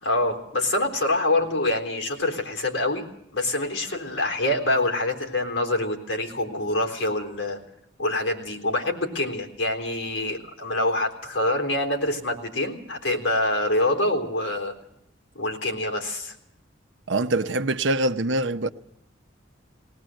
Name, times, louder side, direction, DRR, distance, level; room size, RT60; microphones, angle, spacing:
voice 1, 0.0-3.1 3.3-7.6 8.0-14.7 15.4-16.3, left 1 dB, 75° left, 3.8 m, -25 dB
voice 2, 17.1-18.7, right 2 dB, 70° right, 0.9 m, -24 dB
20.0 x 19.0 x 7.8 m
head